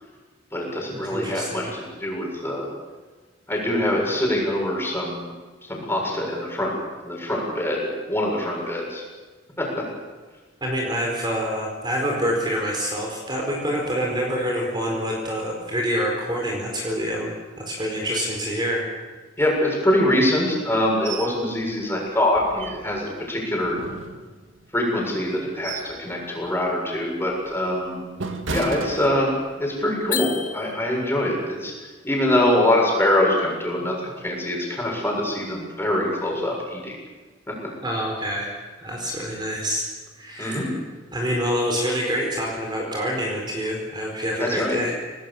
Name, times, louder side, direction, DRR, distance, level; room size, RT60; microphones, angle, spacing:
voice 1, 0.5-2.7 3.5-5.3 5.7-6.7 7.0-9.0 19.4-23.8 24.7-28.1 28.5-29.3 29.6-31.7 32.0-36.9 40.4-40.7 44.4-44.8, left 1 dB, 15° left, -2 dB, 7.2 m, -24 dB
voice 2, 1.0-1.7 10.6-17.3 17.6-18.8 37.8-38.5 38.8-39.9 40.2-40.7 41.1-45.0, equal, 25° right, -1 dB, 4.5 m, -26 dB
sound 1, 21.0-21.4 21.7-21.8 22.3-23.1 23.6-24.6 25.2-26.0 26.4-26.7 27.2-29.7 30.0-30.3, right 3 dB, 80° right, 2.1 m, -34 dB
sound 2, 30.1-31.3, left 9 dB, 45° left, 1.1 m, -31 dB
28.0 x 19.0 x 7.3 m, 1.4 s
head